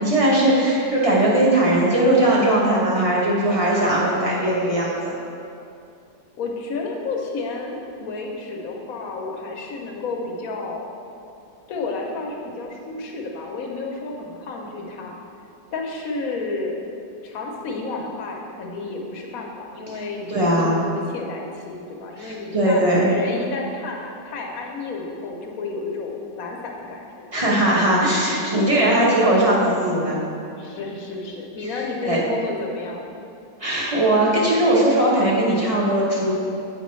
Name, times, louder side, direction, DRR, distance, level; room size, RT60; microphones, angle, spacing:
voice 1, 0.0-5.1 20.3-20.8 22.2-23.1 27.3-30.2 32.1-32.2 33.6-36.3, right 1 dB, 25° right, -5 dB, 0.8 m, -19 dB
voice 2, 6.4-10.9 11.7-15.2 15.7-16.8 17.2-27.8 28.3-28.7 30.6-33.1, left 3 dB, 65° left, 0 dB, 1.1 m, -31 dB
8.2 x 5.0 x 3.1 m, 2.5 s
omnidirectional pair, 1.8 m